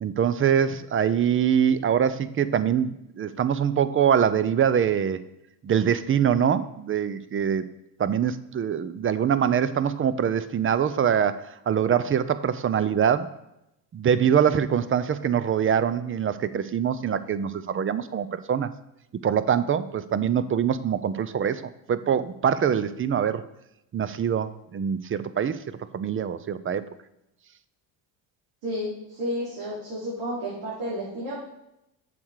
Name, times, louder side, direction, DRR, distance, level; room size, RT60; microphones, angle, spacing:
voice 1, 0.0-5.2 5.6-7.6 8.0-13.3 13.9-18.7 19.2-23.4 23.9-25.6 25.9-26.9, right 8 dB, 30° right, 14 dB, 0.5 m, -24 dB
voice 2, 28.6-31.4, equal, 70° right, -7 dB, 3.1 m, -31 dB
7.1 x 6.7 x 4.7 m, 0.85 s
supercardioid pair, 80°, 47 cm